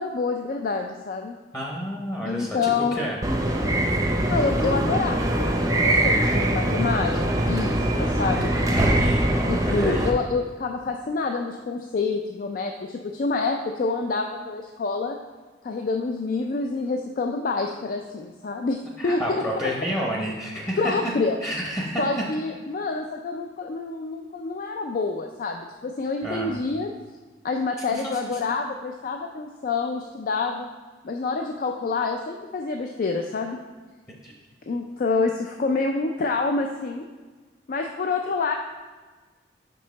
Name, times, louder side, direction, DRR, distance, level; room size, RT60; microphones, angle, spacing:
voice 1, 0.0-1.4 2.2-3.0 4.3-7.2 7.5-8.5 9.5-15.2 15.6-19.9 20.8-21.4 22.0-26.9 27.4-30.7 31.0-33.6 34.7-37.0 37.7-38.5, left 4 dB, 50° left, 3 dB, 0.3 m, -27 dB
voice 2, 1.5-3.2 8.5-10.1 19.0-21.1 21.4-22.2 26.2-26.6 27.9-28.4 34.2-34.3, equal, 20° left, -2 dB, 0.8 m, -30 dB
sound 1, 3.2-10.1, right 1 dB, 20° right, 0.6 m, -22 dB
5.5 x 5.3 x 4.0 m, 1.3 s
head